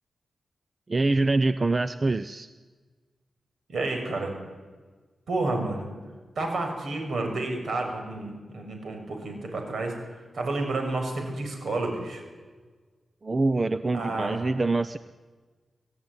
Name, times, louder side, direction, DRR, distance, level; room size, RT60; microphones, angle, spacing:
voice 1, 0.9-2.5 13.2-15.0, right 2 dB, 30° right, 12 dB, 0.7 m, -25 dB
voice 2, 3.7-4.3 5.3-5.9 6.4-12.2 13.9-14.5, right 2 dB, 70° right, 3 dB, 6.5 m, -30 dB
26.5 x 17.0 x 9.8 m, 1.4 s
wide cardioid pair, 115°, 0 cm